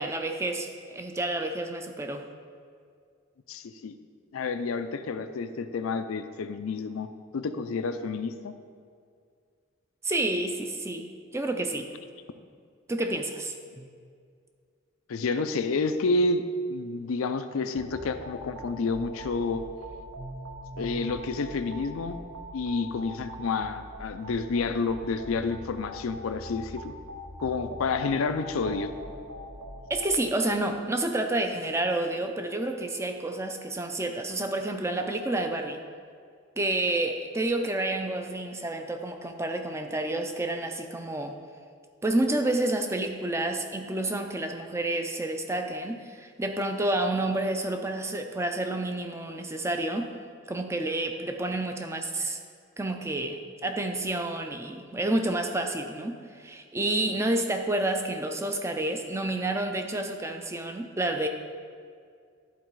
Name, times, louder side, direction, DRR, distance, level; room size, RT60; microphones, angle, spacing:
voice 1, 0.0-2.2 10.0-11.9 12.9-13.9 29.9-35.8 36.6-41.4 42.0-50.1 50.5-52.4 52.8-53.4 53.6-61.3, right 2 dB, 15° right, 5 dB, 0.4 m, -29 dB
voice 2, 3.5-4.0 4.3-7.1 7.3-8.5 15.1-16.4 16.7-19.6 20.8-22.2 22.5-26.9 27.4-28.9, left 4 dB, 90° left, 10 dB, 0.4 m, -29 dB
sound 1, 17.7-30.1, equal, 75° right, 1.0 m, -42 dB
11.0 x 4.0 x 4.6 m, 2.2 s
head